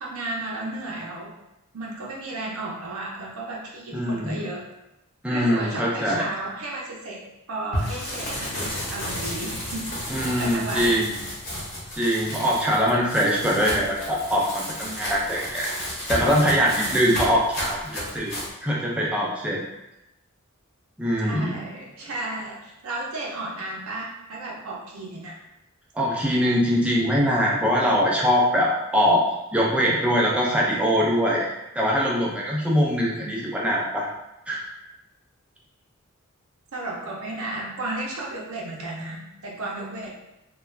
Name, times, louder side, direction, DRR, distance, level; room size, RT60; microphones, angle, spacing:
voice 1, 0.0-1.3 1.7-4.7 5.3-7.2 7.5-11.0 14.8-15.0 21.2-25.4 33.1-33.4 36.7-40.1, right 2 dB, 70° right, -3 dB, 0.6 m, -34 dB
voice 2, 3.9-4.4 5.2-6.2 10.1-11.1 12.0-15.7 16.1-18.4 18.6-19.6 21.0-21.6 25.9-29.2 29.5-31.5 31.8-34.1 34.5-34.6, equal, 5° right, -4 dB, 0.4 m, -22 dB
sound 1, 7.7-18.5, equal, 45° left, 1.0 m, -32 dB
2.3 x 2.2 x 3.1 m, 0.89 s
head